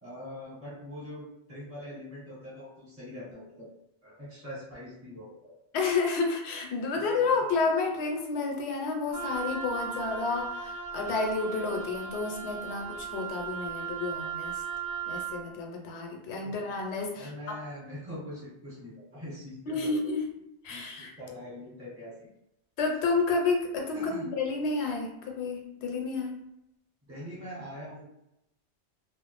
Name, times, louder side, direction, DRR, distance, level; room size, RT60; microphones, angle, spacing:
voice 1, 0.0-3.7 4.0-5.5 6.9-7.4 16.4-16.5 17.1-20.1 20.7-22.3 23.9-24.3 27.1-28.1, left 1 dB, 15° right, -7 dB, 0.9 m, -43 dB
voice 2, 5.7-14.6 15.1-17.3 19.7-20.3 20.6-21.1 22.8-26.4, left 4 dB, 75° left, 1 dB, 0.8 m, -30 dB
Wind instrument woodwind instrument, 9.1-15.4, right 6 dB, 50° right, 0.6 m, -37 dB
2.3 x 2.0 x 2.9 m, 0.85 s
omnidirectional pair, 1.1 m